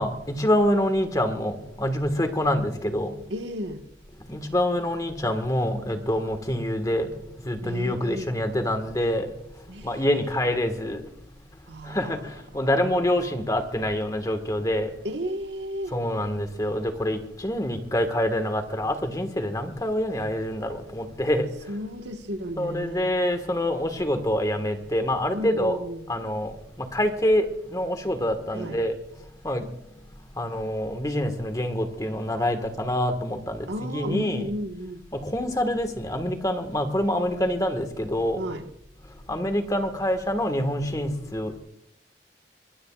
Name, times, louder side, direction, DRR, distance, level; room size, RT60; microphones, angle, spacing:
voice 1, 0.0-3.1 4.3-7.1 7.4-9.3 9.8-11.0 11.9-12.2 12.5-14.9 15.9-21.5 22.6-25.8 26.1-26.5 26.8-27.5 27.7-28.9 29.4-29.6 30.4-33.7 33.9-34.5 35.1-38.4 39.3-41.6, left 1 dB, 20° left, 1.6 m, -26 dB
voice 2, 3.3-3.8 7.6-8.3 9.7-10.1 11.7-12.2 15.0-16.0 21.7-23.1 25.3-26.1 28.5-28.8 33.7-35.0 38.4-38.7, equal, 80° right, 1.4 m, -33 dB
24.0 x 21.0 x 2.4 m
head